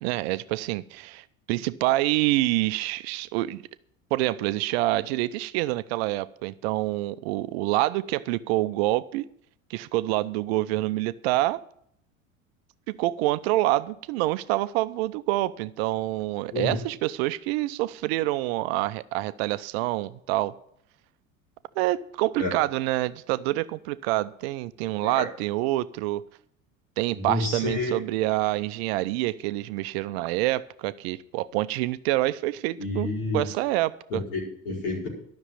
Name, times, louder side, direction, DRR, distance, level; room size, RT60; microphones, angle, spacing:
voice 1, 0.0-3.6 4.1-9.3 9.7-11.6 12.9-20.5 21.8-26.2 27.0-34.2, right 17 dB, 50° right, 15 dB, 0.6 m, -27 dB
voice 2, 16.5-16.8 22.4-22.5 25.0-25.2 27.1-28.0 32.8-33.5 34.1-35.1, left 2 dB, 60° left, -2 dB, 5.0 m, -29 dB
12.5 x 6.3 x 8.5 m, 0.68 s
figure-of-eight pair, 65°, 40 cm